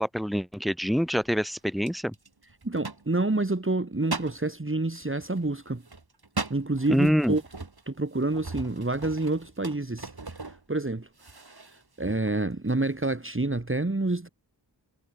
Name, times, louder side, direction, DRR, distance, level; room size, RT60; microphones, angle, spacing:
voice 1, 0.0-2.1 6.9-7.4, equal, ahead, 4.3 m, -25 dB
sound 1, 0.9-1.3 1.9-3.6 4.0-4.4 5.0-10.9 11.2-11.8 12.3-12.4 12.7-13.0, right 3 dB, 55° right, 3.7 m, -39 dB
voice 2, 2.6-5.8 6.5-7.4 7.9-10.1 10.5-11.1 11.7-14.3, right 2 dB, 25° right, 2.2 m, -28 dB
wide cardioid pair, 55°, 45 cm